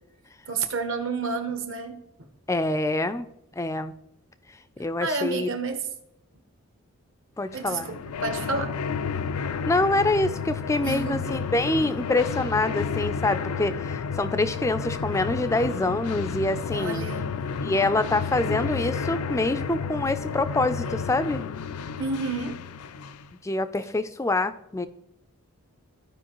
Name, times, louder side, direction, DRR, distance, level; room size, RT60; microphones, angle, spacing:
voice 1, 0.5-2.3 5.0-5.9 7.5-8.8 9.3-9.4 10.8-11.3 16.7-17.3 22.0-22.6, right 4 dB, 60° right, 1.0 m, -30 dB
voice 2, 2.5-3.3 3.6-3.9 4.8-5.5 7.4-7.9 9.7-17.1 17.6-21.4 23.4-24.9, left 2 dB, 15° left, 0.3 m, -26 dB
sound 1, 7.5-23.3, left 5 dB, 85° left, 0.4 m, -31 dB
14.5 x 4.9 x 3.0 m
head